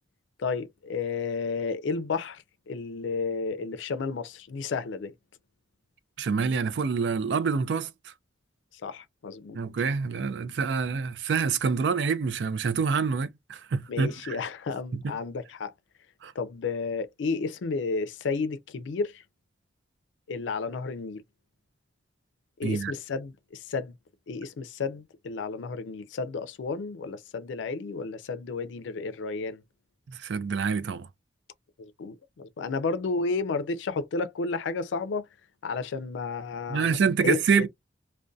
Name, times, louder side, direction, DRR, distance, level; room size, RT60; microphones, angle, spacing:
voice 1, 0.4-5.1 8.7-9.6 13.9-15.7 16.4-19.2 20.3-21.2 22.6-23.9 24.3-29.6 31.8-35.3 35.6-37.7, left 4 dB, 90° left, 0.4 m, -32 dB
voice 2, 6.2-7.9 9.5-14.4 14.9-15.1 16.2-16.3 22.6-22.9 30.1-31.1 36.7-37.7, right 5 dB, 70° right, 0.4 m, -26 dB
2.5 x 2.1 x 2.2 m
head